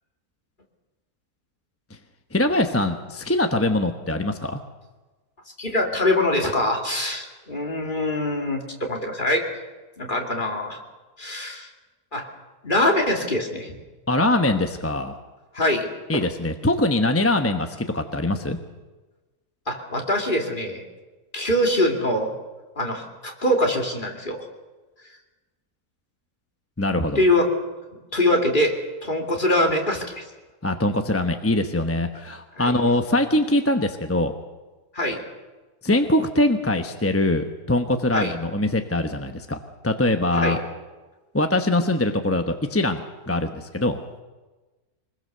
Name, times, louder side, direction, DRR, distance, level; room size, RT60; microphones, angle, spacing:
voice 1, 2.3-4.6 14.1-15.2 16.1-18.6 26.8-27.2 30.6-34.3 35.8-40.6 41.3-44.0, left 1 dB, 10° left, 6 dB, 0.8 m, -23 dB
voice 2, 5.6-8.6 8.9-9.4 10.0-10.8 11.2-11.7 12.1-12.3 12.6-13.7 15.5-15.9 16.2-16.3 19.7-20.8 21.3-22.3 22.8-24.5 27.1-27.5 28.1-28.7 29.0-30.2 32.6-32.7 34.9-35.2 38.1-38.3 40.3-40.6, left 1 dB, 30° left, 2 dB, 2.8 m, -23 dB
24.0 x 21.0 x 6.8 m, 1.2 s
omnidirectional pair, 1.7 m